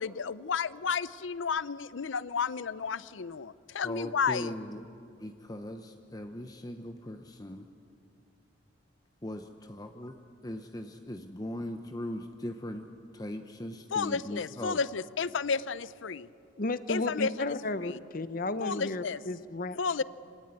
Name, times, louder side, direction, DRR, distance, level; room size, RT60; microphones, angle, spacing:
voice 1, 0.0-4.5 13.9-16.3 16.9-17.5 17.8-18.0 18.6-19.2 19.8-20.0, left 5 dB, 85° left, 18 dB, 0.6 m, -32 dB
voice 2, 3.8-4.9 5.2-7.7 9.2-10.2 10.4-12.9 13.1-14.8, left 1 dB, 20° left, 6 dB, 0.8 m, -39 dB
voice 3, 16.6-20.0, left 2 dB, 45° left, 13 dB, 0.9 m, -33 dB
26.0 x 17.5 x 9.6 m, 2.5 s
head